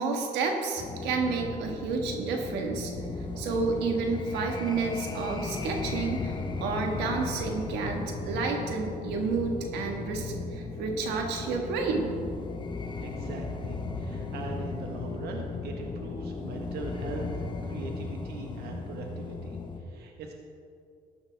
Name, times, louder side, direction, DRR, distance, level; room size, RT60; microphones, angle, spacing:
voice 1, 0.0-2.9 3.4-12.1, right 4 dB, 90° right, 2 dB, 1.5 m, -30 dB
sound 1, 0.8-19.8, left 3 dB, 25° left, 1.0 m, -36 dB
voice 2, 13.0-20.3, right 3 dB, 70° right, 1 dB, 1.4 m, -41 dB
13.5 x 11.0 x 3.5 m, 2.5 s
cardioid pair, 110°, 17 cm